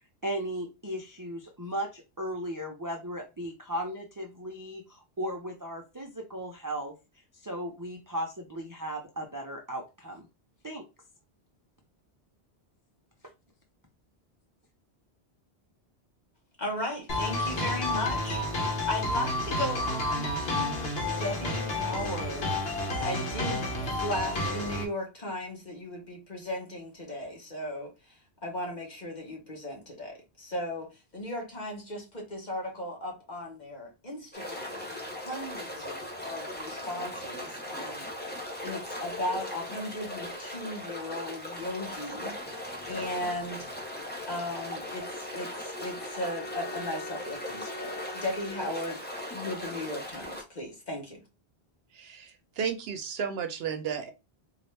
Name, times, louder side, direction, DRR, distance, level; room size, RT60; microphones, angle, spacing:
voice 1, 0.2-6.9 7.4-10.3 10.6-10.8, right 1 dB, 25° right, 0.5 m, -36 dB
voice 2, 16.6-18.4 18.8-23.7 24.0-38.1 38.6-43.7 44.3-49.0 49.3-51.2, left 1 dB, 45° left, 1.4 m, -36 dB
sound 1, 17.1-24.8, left 2 dB, 65° left, 1.3 m, -30 dB
sound 2, 34.3-50.4, left 1 dB, 10° left, 0.9 m, -39 dB
Bowed string instrument, 44.6-49.1, left 2 dB, 85° left, 1.0 m, -44 dB
voice 3, 51.9-54.1, right 7 dB, 70° right, 0.8 m, -33 dB
4.0 x 2.4 x 3.3 m
omnidirectional pair, 1.1 m